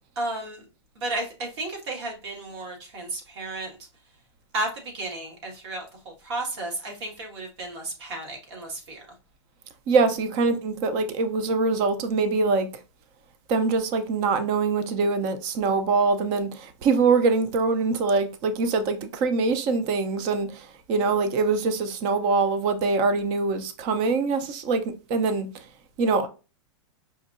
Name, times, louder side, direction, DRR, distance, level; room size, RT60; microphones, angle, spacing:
voice 1, 0.1-0.6 0.9-3.7 4.5-9.0, right 2 dB, 65° right, 1.7 m, -33 dB
voice 2, 9.9-12.7 13.5-24.8 25.1-25.5 26.0-26.3, right 4 dB, 30° right, 0.5 m, -23 dB
4.9 x 2.7 x 2.5 m
supercardioid pair, 155°, 15 cm